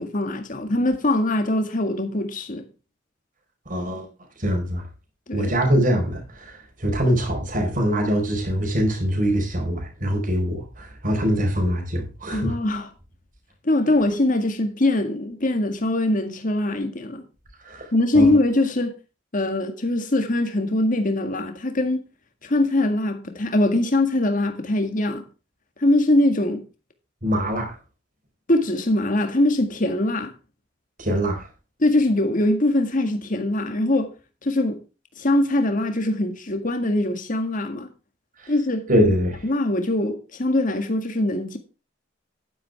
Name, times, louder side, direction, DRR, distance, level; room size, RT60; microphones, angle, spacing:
voice 1, 0.0-2.7 5.3-5.5 12.3-12.9 13.6-17.2 17.9-18.9 19.3-22.0 22.4-25.3 25.8-26.6 28.5-30.3 31.8-34.1 34.4-34.8 35.2-37.9 38.5-38.9 39.4-41.6, left 1 dB, 45° left, 1.9 m, -22 dB
voice 2, 3.7-4.1 4.4-4.8 5.3-12.6 17.6-17.8 18.1-18.3 27.2-27.7 31.0-31.5 38.9-39.4, equal, 45° right, 4.8 m, -23 dB
11.5 x 10.5 x 3.5 m
head